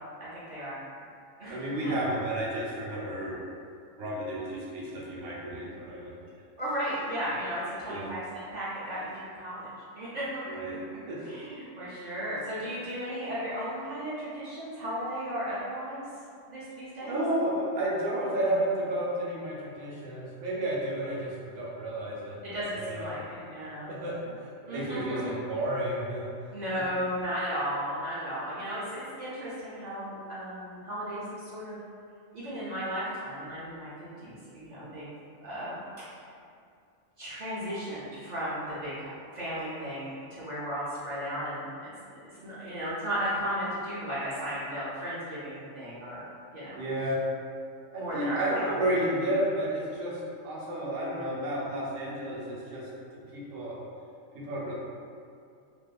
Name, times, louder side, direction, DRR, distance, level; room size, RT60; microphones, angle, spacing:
voice 1, 0.2-0.8 1.4-1.9 6.6-9.7 9.9-10.3 11.2-16.0 16.5-17.2 22.4-23.9 24.2-24.3 24.7-25.4 26.5-31.8 32.3-33.9 34.2-35.1 35.4-35.8 36.1-36.2 37.2-46.8 48.0-48.7, equal, 60° right, -9 dB, 0.4 m, -35 dB
voice 2, 1.5-3.4 4.0-6.1 7.9-8.1 10.5-10.8 11.1-11.3 17.0-23.1 23.9-24.2 24.6-26.3 26.7-26.8 46.7-47.2 47.9-52.8 53.3-53.8 54.3-54.7, right 1 dB, 90° right, -5 dB, 1.0 m, -32 dB
2.7 x 2.4 x 2.2 m, 2.4 s
omnidirectional pair, 1.3 m